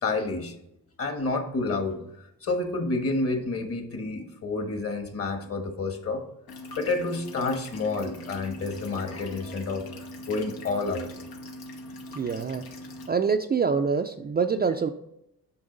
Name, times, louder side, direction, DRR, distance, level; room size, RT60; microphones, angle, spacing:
voice 1, 0.0-0.5 1.0-6.2 6.8-11.1 14.6-14.7, left 3 dB, 40° left, 6 dB, 1.4 m, -29 dB
sound 1, 6.5-13.1, left 1 dB, 85° left, 1.3 m, -41 dB
voice 2, 12.1-12.7 13.1-14.9, right 5 dB, 25° right, 6 dB, 0.4 m, -25 dB
8.7 x 5.7 x 3.9 m, 0.80 s
cardioid pair, 110°, 36 cm